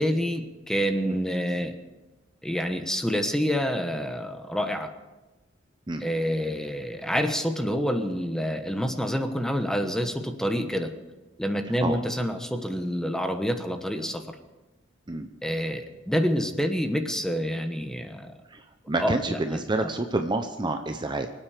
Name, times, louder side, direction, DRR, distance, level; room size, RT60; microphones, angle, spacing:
voice 1, 0.0-1.7 2.4-4.9 6.0-10.9 11.4-14.3 15.4-18.3 19.0-19.9, equal, 5° left, 6 dB, 1.1 m, -27 dB
voice 2, 11.7-12.0 15.1-15.3 18.5-21.3, right 2 dB, 25° right, 6 dB, 0.7 m, -29 dB
24.5 x 9.1 x 5.0 m, 1.1 s
head